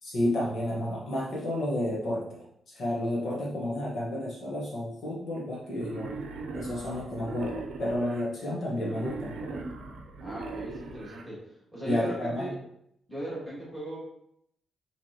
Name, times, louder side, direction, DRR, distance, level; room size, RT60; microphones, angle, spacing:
voice 1, 0.0-6.1 6.5-9.6 11.8-12.4, left 1 dB, 50° left, -5 dB, 1.1 m, -31 dB
Wild animals, 5.7-8.2 8.7-11.2, right 3 dB, 75° right, 0.6 m, -39 dB
voice 2, 10.2-11.4 11.7-12.6 13.1-14.0, right 1 dB, ahead, -7 dB, 1.6 m, -37 dB
5.9 x 3.2 x 2.9 m, 0.75 s
wide cardioid pair, 180°, 0 cm